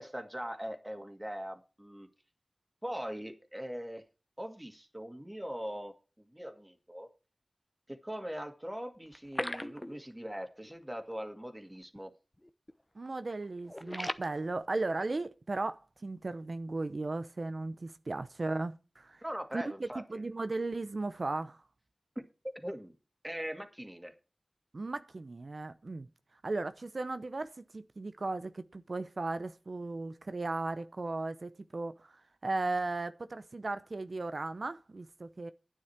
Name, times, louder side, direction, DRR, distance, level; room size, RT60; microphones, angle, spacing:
voice 1, 0.0-2.1 2.8-4.0 4.4-7.1 7.9-12.1 19.2-20.2 22.6-22.9 23.2-24.1, equal, 15° right, 2.2 m, -41 dB
sound 1, 9.1-10.4 10.6-10.8 11.1-11.2 11.8-12.1 12.3-12.7 13.0-14.3, left 1 dB, 15° left, 0.8 m, -38 dB
voice 2, 12.9-19.2 19.5-21.6 24.7-26.1 26.4-35.5, right 2 dB, 70° right, 0.7 m, -36 dB
11.0 x 9.2 x 4.5 m
wide cardioid pair, 60°, 0 cm